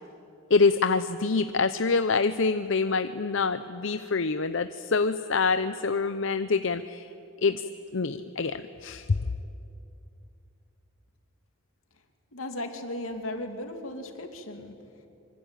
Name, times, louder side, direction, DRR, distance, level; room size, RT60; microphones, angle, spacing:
voice 1, 0.5-7.1 7.4-7.6 7.9-9.1, left 4 dB, 65° left, 11 dB, 0.7 m, -26 dB
voice 2, 12.3-14.7, left 1 dB, 85° left, 5 dB, 2.7 m, -36 dB
25.5 x 25.0 x 9.1 m, 2.7 s
head